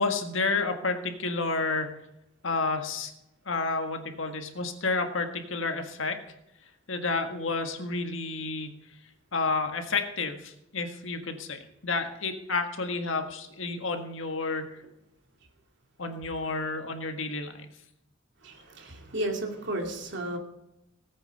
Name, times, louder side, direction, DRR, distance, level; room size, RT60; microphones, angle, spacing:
voice 1, 0.0-1.9 2.4-3.1 3.4-6.2 6.9-8.8 9.3-14.8 16.0-17.7, left 3 dB, 75° left, 5 dB, 1.7 m, -30 dB
voice 2, 18.4-20.4, right 1 dB, 60° right, 2 dB, 2.7 m, -33 dB
18.5 x 8.7 x 5.4 m, 0.87 s
head